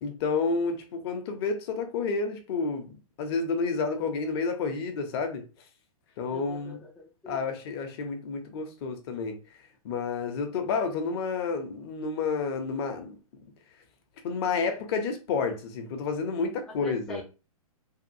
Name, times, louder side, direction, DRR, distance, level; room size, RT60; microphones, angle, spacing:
voice 1, 0.0-5.4 6.2-6.8 7.3-9.4 9.8-13.1 14.2-17.2, left 4 dB, 45° left, 0.7 m, -30 dB
voice 2, 6.3-7.5 16.8-17.2, equal, 5° left, 0.3 m, -44 dB
2.8 x 2.5 x 2.6 m
hypercardioid pair, 125°, 19 cm